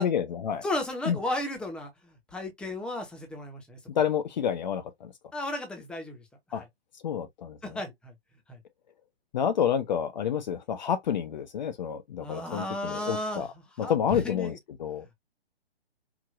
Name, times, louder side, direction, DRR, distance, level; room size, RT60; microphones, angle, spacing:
voice 1, 0.0-0.6 1.1-1.2 3.9-5.1 6.5-6.6 7.0-7.7 9.3-13.5 13.8-14.5 14.8-15.0, left 8 dB, 45° left, 0.7 m, -29 dB
voice 2, 0.6-3.8 5.3-6.2 6.5-6.7 7.6-8.1 8.5-8.6 12.2-14.6, left 1 dB, 5° left, 0.9 m, -34 dB
4.9 x 2.6 x 2.5 m
figure-of-eight pair, 130°, 31 cm